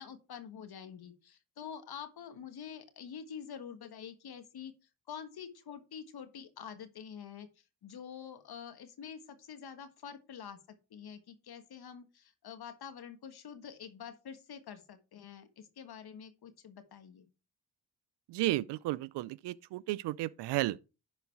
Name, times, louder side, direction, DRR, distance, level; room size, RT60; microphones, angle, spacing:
voice 1, 0.0-4.7 5.1-17.3, left 7 dB, 65° left, 1.5 m, -47 dB
voice 2, 18.3-20.8, right 17 dB, 80° right, 0.5 m, -33 dB
11.0 x 4.1 x 4.6 m
supercardioid pair, 55°, 40 cm